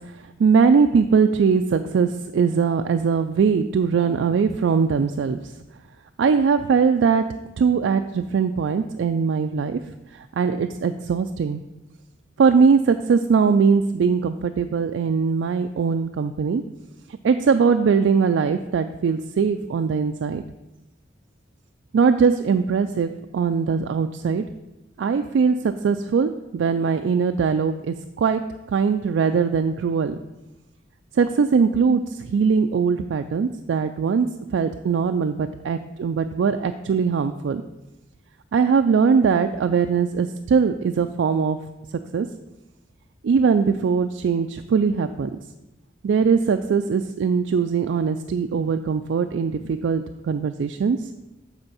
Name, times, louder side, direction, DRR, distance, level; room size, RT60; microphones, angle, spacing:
voice 1, 0.0-5.5 6.2-11.6 12.4-16.6 17.2-20.4 21.9-24.4 25.0-30.2 31.1-37.6 38.5-41.6 42.1-42.3 43.2-45.3 46.0-51.1, right 5 dB, 70° right, 7 dB, 0.3 m, -21 dB
8.0 x 4.3 x 5.5 m, 1.0 s
head